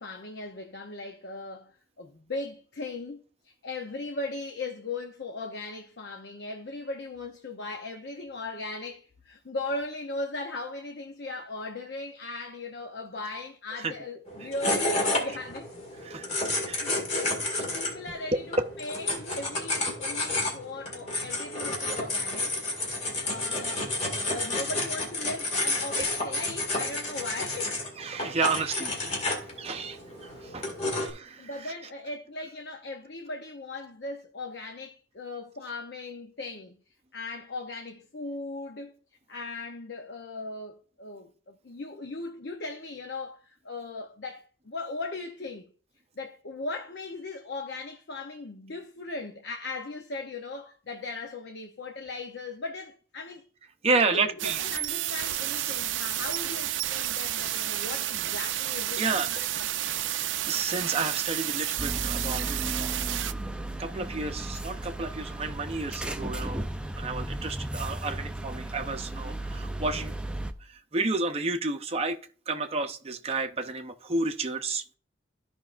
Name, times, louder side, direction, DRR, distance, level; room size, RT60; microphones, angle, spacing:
voice 1, 0.0-15.7 16.5-22.5 23.2-23.9 24.2-27.8 28.2-28.4 28.8-28.9 31.4-36.8 37.1-38.9 39.3-45.7 46.2-53.4 53.9-59.5 59.7-60.0, left 2 dB, 60° left, 0.7 m, -38 dB
sound 1, 14.3-31.1, left 2 dB, 35° left, 1.9 m, -31 dB
voice 2, 16.0-16.9 18.3-18.4 28.0-28.9 29.6-31.7 53.8-54.6 59.0-59.5 60.0-63.0 63.8-66.7 67.0-70.1 70.6-72.2 72.5-75.0, right 3 dB, 35° right, 0.7 m, -31 dB
sound 2, 54.4-63.3, right 13 dB, 80° right, 0.4 m, -31 dB
sound 3, 61.8-70.5, right 1 dB, 5° right, 0.4 m, -35 dB
13.5 x 5.3 x 2.5 m
head